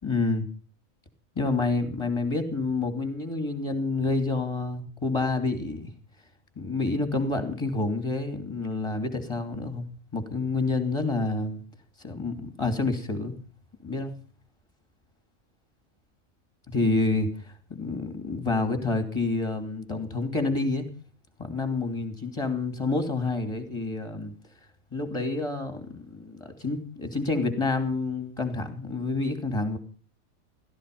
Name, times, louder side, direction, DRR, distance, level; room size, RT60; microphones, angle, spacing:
voice 1, 0.0-0.5 1.3-5.9 6.6-9.9 10.1-11.6 12.0-13.3 13.8-14.1 16.7-20.9 21.4-24.3 24.9-29.8, left 3 dB, 20° left, 8 dB, 2.9 m, -28 dB
15.5 x 14.5 x 5.5 m, 0.38 s
omnidirectional pair, 1.4 m